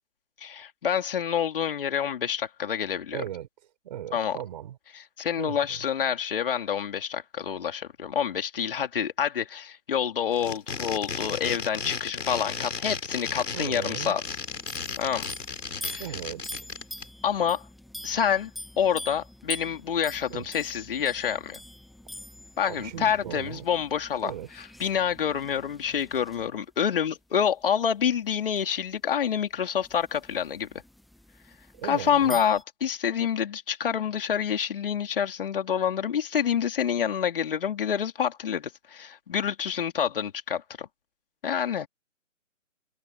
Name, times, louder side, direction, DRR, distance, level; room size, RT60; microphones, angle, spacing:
voice 1, 0.4-3.2 4.1-4.4 4.9-14.2 15.0-15.3 15.8-16.0 17.2-17.6 18.0-18.5 18.8-21.6 22.6-24.3 24.6-30.7 31.8-40.9 41.4-41.9, left 8 dB, 45° left, 3.3 m, -27 dB
voice 2, 3.1-3.5 3.8-4.8 5.4-5.8 13.5-14.2 16.0-16.7 20.3-20.5 22.6-23.6 24.2-24.5 31.7-32.4, right 11 dB, 35° right, 4.4 m, -37 dB
sound 1, 10.3-17.0, left 5 dB, 70° left, 5.7 m, -34 dB
sound 2, 14.2-26.5 28.6-28.7 29.8-32.6, left 1 dB, ahead, 0.4 m, -44 dB
hypercardioid pair, 155°, 39 cm